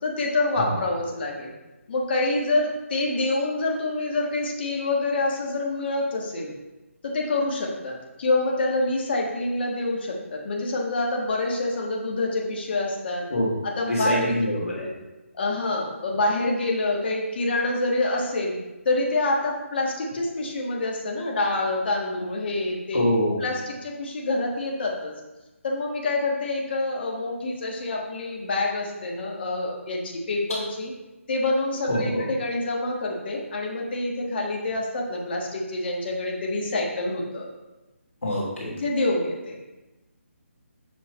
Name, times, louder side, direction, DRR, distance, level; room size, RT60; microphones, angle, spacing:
voice 1, 0.0-1.5 1.9-6.5 7.0-13.3 13.6-14.4 14.8-14.9 15.3-18.6 18.8-23.0 23.4-25.1 25.6-30.9 31.3-37.4 38.8-39.6, left 2 dB, 45° left, -1 dB, 1.5 m, -26 dB
voice 2, 13.3-13.6 13.9-14.7 22.9-23.4 31.9-32.2 38.2-38.7, left 1 dB, 70° left, -5 dB, 2.5 m, -24 dB
7.6 x 6.1 x 3.0 m, 1.1 s
figure-of-eight pair, 150°, 8 cm